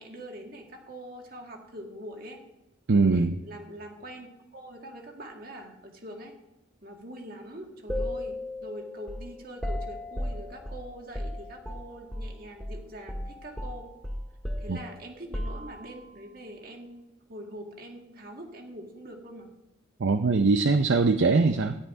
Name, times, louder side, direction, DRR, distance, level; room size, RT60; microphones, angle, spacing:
voice 1, 0.0-2.4 3.1-6.3 6.8-13.9 14.6-19.5, equal, 45° right, 2 dB, 2.0 m, -43 dB
voice 2, 2.9-3.4 14.7-14.8 20.0-21.8, right 3 dB, 65° right, 8 dB, 0.6 m, -22 dB
sound 1, 7.9-12.3 12.6-12.8 13.1-16.1, left 1 dB, 5° left, 1.6 m, -35 dB
13.0 x 5.6 x 9.5 m, 0.94 s
head